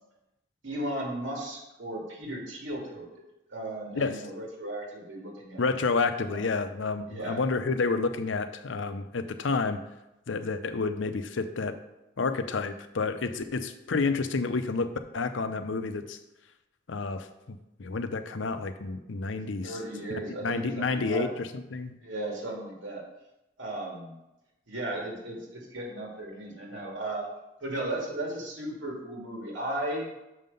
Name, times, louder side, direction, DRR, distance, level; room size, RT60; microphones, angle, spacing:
voice 1, 0.6-3.2 3.5-5.7 6.3-6.4 7.1-7.4 19.6-21.3 22.0-23.0 23.6-24.2 24.7-27.3 27.6-30.1, right 1 dB, 90° right, -1 dB, 2.3 m, -35 dB
voice 2, 5.6-9.8 10.3-11.8 12.2-16.2 16.9-19.8 20.1-21.9, left 4 dB, 80° left, 10 dB, 0.6 m, -30 dB
6.3 x 5.7 x 5.3 m, 0.94 s
head